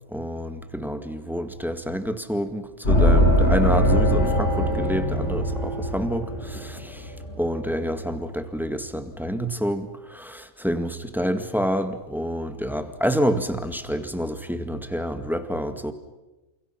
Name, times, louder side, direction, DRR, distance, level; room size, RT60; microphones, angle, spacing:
voice 1, 0.1-15.9, equal, ahead, 8 dB, 1.8 m, -28 dB
sound 1, 2.8-7.6, equal, 50° left, 8.1 m, -21 dB
29.5 x 28.0 x 5.9 m, 1.1 s
omnidirectional pair, 1.6 m